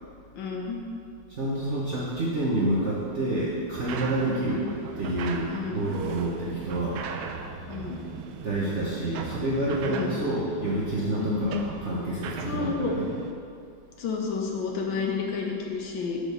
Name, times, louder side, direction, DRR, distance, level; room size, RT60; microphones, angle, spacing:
voice 1, 0.3-0.8 4.2-4.5 5.5-5.9 7.7-8.0 9.9-10.1 11.2-11.5 12.4-13.0 14.0-16.2, left 5 dB, 70° left, 0 dB, 1.5 m, -30 dB
voice 2, 1.3-4.6 5.0-7.0 8.4-13.0, right 1 dB, 45° right, -6 dB, 1.0 m, -28 dB
sound 1, 3.7-13.3, right 5 dB, 80° right, 1.4 m, -38 dB
6.0 x 5.0 x 6.8 m, 2.4 s
omnidirectional pair, 2.3 m